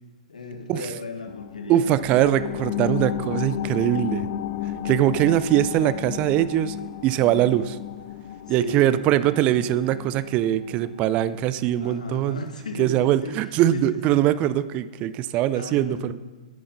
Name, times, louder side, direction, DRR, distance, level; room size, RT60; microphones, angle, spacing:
voice 1, 0.3-1.8 4.8-5.1 8.6-8.9 11.8-13.3 13.7-14.3 15.5-16.1, left 2 dB, 75° left, 6 dB, 1.4 m, -35 dB
sound 1, 1.3-12.4 12.8-12.9, left 11 dB, 45° left, 0.4 m, -33 dB
voice 2, 1.7-4.3 4.8-6.8 7.0-7.8 8.5-12.4 12.8-16.1, right 12 dB, 30° right, 15 dB, 0.4 m, -22 dB
10.5 x 7.7 x 5.4 m, 1.2 s
figure-of-eight pair, 110°, 4 cm